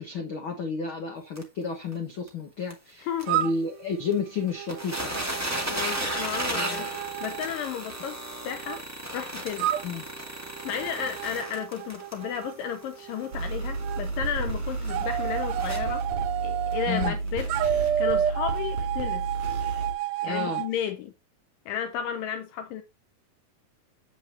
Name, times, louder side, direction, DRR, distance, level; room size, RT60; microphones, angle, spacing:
voice 1, 0.0-5.2 6.5-6.9 9.8-10.1 16.9-17.2 20.2-20.6, left 5 dB, 60° left, 1.4 m, -31 dB
sound 1, 1.3-1.4 1.9-2.0 2.3-2.4 2.7-2.8 3.2-3.3 4.1-4.2 4.5-16.0 16.7-16.8 17.3-17.4, right 1 dB, 10° right, 0.7 m, -35 dB
sound 2, 3.3-8.8 9.6-14.0 14.9-17.2 17.5-20.7, right 11 dB, 85° right, 2.5 m, -32 dB
voice 2, 5.7-8.2 8.4-8.8 9.1-9.7 10.6-16.1 16.4-17.5 18.0-19.3 20.2-21.1 21.7-22.8, left 9 dB, 80° left, 2.3 m, -33 dB
sound 3, 13.3-19.9, right 3 dB, 40° right, 4.2 m, -31 dB
8.1 x 7.5 x 2.8 m
omnidirectional pair, 4.1 m